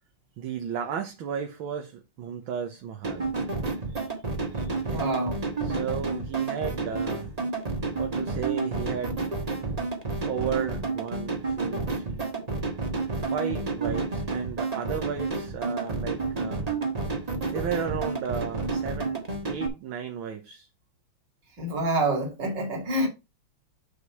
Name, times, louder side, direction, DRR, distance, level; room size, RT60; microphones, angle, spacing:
voice 1, 0.4-3.3 4.8-5.1 5.6-7.3 8.0-9.2 10.3-12.5 13.2-16.6 17.5-19.2 19.5-20.7, right 7 dB, 70° right, 1.8 m, -34 dB
sound 1, 3.0-19.7, right 3 dB, 20° right, 1.3 m, -30 dB
voice 2, 4.9-5.4 21.6-23.1, right 1 dB, 55° right, 3.1 m, -27 dB
6.5 x 5.2 x 5.5 m
omnidirectional pair, 2.4 m